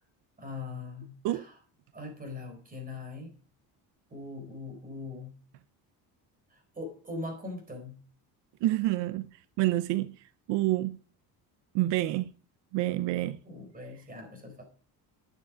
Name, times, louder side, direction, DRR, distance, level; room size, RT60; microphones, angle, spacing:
voice 1, 0.4-1.6 1.9-3.3 4.1-5.3 6.5-8.0 13.4-14.6, left 3 dB, 20° right, 4.4 m, -41 dB
voice 2, 8.6-9.3 9.6-10.2 10.5-11.0 11.7-12.3 12.7-13.4, right 16 dB, 80° right, 0.7 m, -27 dB
12.0 x 9.5 x 5.1 m
cardioid pair, 150°, 42 cm